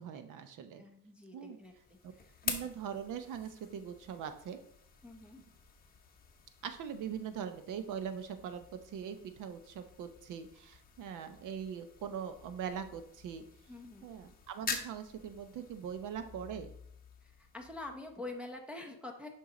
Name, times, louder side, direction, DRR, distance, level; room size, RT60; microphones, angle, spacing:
voice 1, 0.0-0.8 1.3-1.6 2.0-2.1 2.4-4.6 6.6-13.4 14.0-16.7, right 8 dB, 55° right, 10 dB, 0.8 m, -41 dB
voice 2, 0.7-1.7 5.0-5.4 13.7-14.1 17.2-19.3, left 2 dB, 5° right, 0 dB, 0.7 m, -46 dB
sound 1, 1.6-18.5, left 6 dB, 25° left, 0.9 m, -47 dB
7.1 x 5.7 x 3.8 m, 0.69 s
cardioid pair, 150°, 37 cm